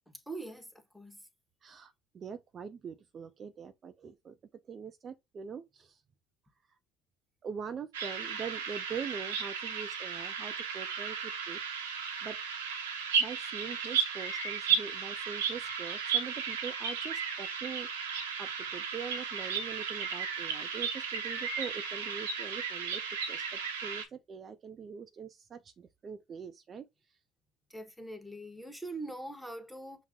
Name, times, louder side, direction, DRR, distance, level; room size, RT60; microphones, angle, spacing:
voice 1, 0.3-0.7 0.9-1.2 27.7-30.0, right 2 dB, ahead, 0.9 m, -42 dB
voice 2, 1.6-4.4 4.7-6.0 7.4-11.6 12.2-12.4 13.2-26.9, right 6 dB, 40° right, 0.5 m, -43 dB
sound 1, 7.9-24.0, right 6 dB, 85° right, 0.8 m, -34 dB
5.7 x 2.1 x 3.7 m
hypercardioid pair, 75°, 0 cm